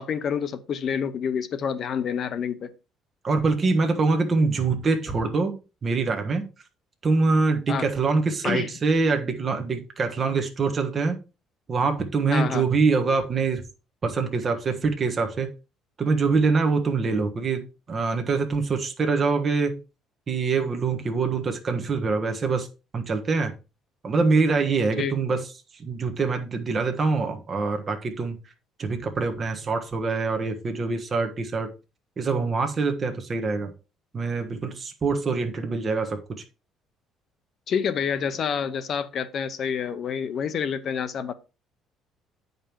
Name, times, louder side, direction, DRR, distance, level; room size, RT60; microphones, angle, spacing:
voice 1, 0.0-2.7 7.7-7.9 8.4-8.7 12.3-12.7 25.0-25.2 37.7-41.3, left 7 dB, 40° left, 0.8 m, -28 dB
voice 2, 3.2-5.5 5.8-6.4 7.0-11.2 11.7-13.6 14.0-15.5 16.0-17.6 17.9-19.8 20.3-22.7 22.9-23.5 24.0-28.4 28.8-31.7 32.2-33.7 34.1-36.4, right 4 dB, 25° right, 1.3 m, -24 dB
8.9 x 5.4 x 4.5 m
cardioid pair, 165°, 0 cm